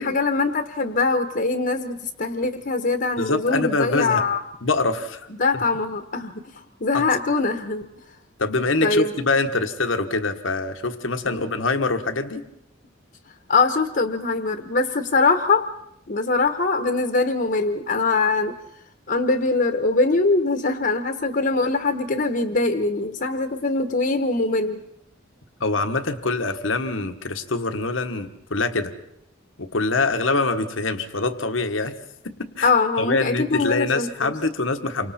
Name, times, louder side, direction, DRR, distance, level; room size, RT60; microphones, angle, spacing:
voice 1, 0.0-4.4 5.4-7.9 8.8-9.1 11.2-11.5 13.5-15.7 16.1-18.5 19.1-24.8 32.6-34.3, left 3 dB, 50° left, 6 dB, 1.2 m, -22 dB
voice 2, 3.2-4.2 4.6-5.3 6.9-7.0 8.4-12.4 25.6-28.9 29.6-31.9 32.2-32.7 33.0-35.1, left 3 dB, 75° left, 8 dB, 1.4 m, -24 dB
28.5 x 25.0 x 4.3 m, 0.77 s
head